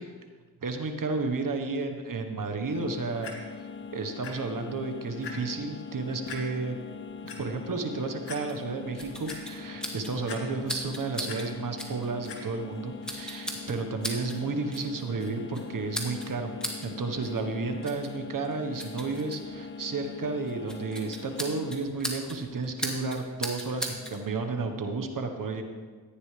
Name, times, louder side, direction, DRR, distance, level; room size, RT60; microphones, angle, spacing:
voice 1, 0.6-3.3 3.6-6.8 7.2-25.6, right 3 dB, 50° right, 6 dB, 1.4 m, -32 dB
sound 1, 2.7-21.8, left 5 dB, 30° left, 0.4 m, -42 dB
Clock, 3.2-3.3 4.2-4.3 4.8-4.9 5.2-5.3 6.3-6.4 7.0-7.4 7.9-8.0 8.3-8.4 8.9-9.4 10.3-10.8 11.1-11.4 12.3-12.4 13.1-13.2, left 6 dB, 85° left, 1.9 m, -40 dB
sound 2, 8.5-24.2, equal, ahead, 2.0 m, -40 dB
14.5 x 9.3 x 3.4 m, 1.5 s
cardioid pair, 70°, 41 cm